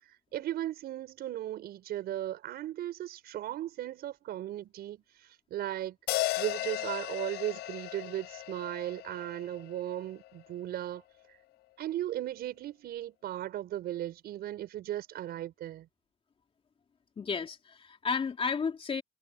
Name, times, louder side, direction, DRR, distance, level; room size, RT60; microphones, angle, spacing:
voice 1, 0.1-11.0 11.8-15.9, right 13 dB, 70° right, 6.2 m, -37 dB
sound 1, 6.1-10.4, left 17 dB, 85° left, 4.2 m, -36 dB
voice 2, 17.2-19.0, left 5 dB, 35° left, 3.2 m, -32 dB
cardioid pair, 110°, 17 cm